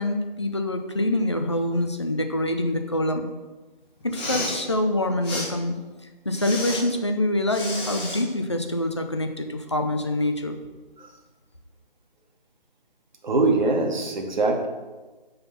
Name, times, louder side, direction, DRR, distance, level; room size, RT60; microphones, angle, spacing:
voice 1, 0.0-3.3 4.0-5.8 6.3-10.6, left 1 dB, 30° left, 6 dB, 0.4 m, -25 dB
Respiratory sounds, 4.0-4.6 5.2-5.5 6.3-6.8 7.5-8.2, left 1 dB, 10° left, 0.9 m, -31 dB
voice 2, 13.2-14.7, right 3 dB, 50° right, 3 dB, 1.0 m, -22 dB
5.8 x 3.9 x 5.3 m, 1.2 s
figure-of-eight pair, 150°, 29 cm